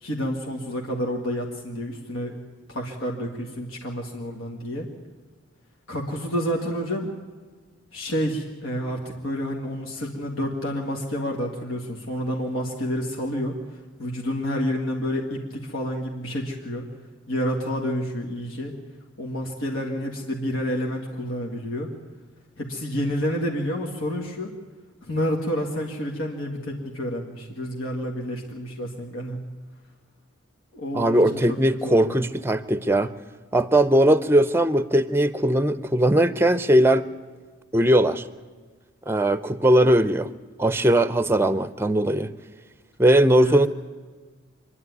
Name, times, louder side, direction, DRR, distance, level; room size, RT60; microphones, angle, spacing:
voice 1, 0.0-2.4 2.7-4.9 5.9-7.1 7.9-13.6 14.0-16.9 17.3-18.7 19.2-21.9 22.6-24.5 25.0-29.4 30.7-31.6 31.8-32.2 43.4-43.6, equal, 85° left, 0 dB, 2.0 m, -29 dB
voice 2, 30.9-33.1 33.5-37.1 37.7-38.2 39.1-40.3 40.6-42.3 43.0-43.7, right 1 dB, 10° right, 15 dB, 0.5 m, -19 dB
26.0 x 11.0 x 9.5 m, 1.5 s
head